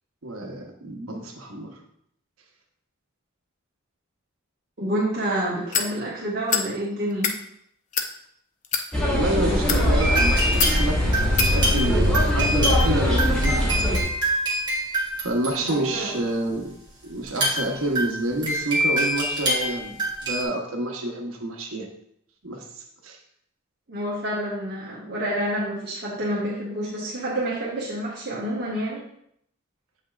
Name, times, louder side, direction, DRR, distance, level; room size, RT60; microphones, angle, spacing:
voice 1, 0.2-1.7 9.0-14.1 15.2-16.7 17.0-20.0 20.2-21.9 22.4-22.6 23.0-23.2, right 1 dB, 80° right, 2 dB, 1.0 m, -28 dB
voice 2, 4.8-7.3 15.6-16.2 23.9-29.0, right 1 dB, 50° right, -8 dB, 1.3 m, -28 dB
sound 1, 5.7-5.9 6.5-6.7 7.1-7.4 7.9-8.1 8.6-8.9 9.5-9.8 10.6-10.8 11.4-11.5, left 7 dB, 35° left, 0.4 m, -24 dB
sound 2, 8.9-14.0, left 1 dB, 5° left, 1.1 m, -21 dB
sound 3, 10.0-16.3 17.2-20.4, right 1 dB, 20° right, 1.6 m, -26 dB
7.6 x 5.4 x 2.4 m, 0.71 s
head